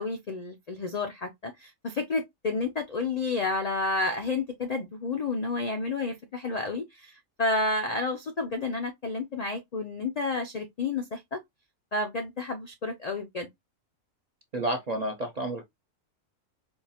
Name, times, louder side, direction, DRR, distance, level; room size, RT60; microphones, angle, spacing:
voice 1, 0.0-11.4 11.9-13.5, left 3 dB, 65° left, 0.4 m, -30 dB
voice 2, 14.5-15.7, right 1 dB, 50° right, 0.5 m, -30 dB
4.5 x 2.3 x 2.7 m
omnidirectional pair, 1.4 m